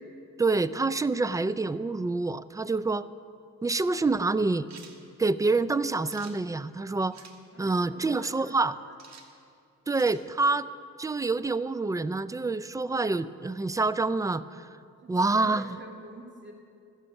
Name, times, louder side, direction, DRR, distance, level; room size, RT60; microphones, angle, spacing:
voice 1, 0.4-3.1 3.6-4.7 5.2-7.2 7.6-8.7 9.9-10.7 11.0-14.4 15.1-15.7, right 3 dB, 10° right, 16 dB, 0.3 m, -27 dB
sound 1, 4.7-5.0 6.1-6.4 7.1-7.4 9.0-9.3 9.9-10.2, right 6 dB, 60° right, 1.4 m, -49 dB
voice 2, 7.5-8.9 15.0-16.5, right 1 dB, 40° right, 1 dB, 2.5 m, -47 dB
13.5 x 10.0 x 6.9 m, 2.4 s
cardioid pair, 90°, 30 cm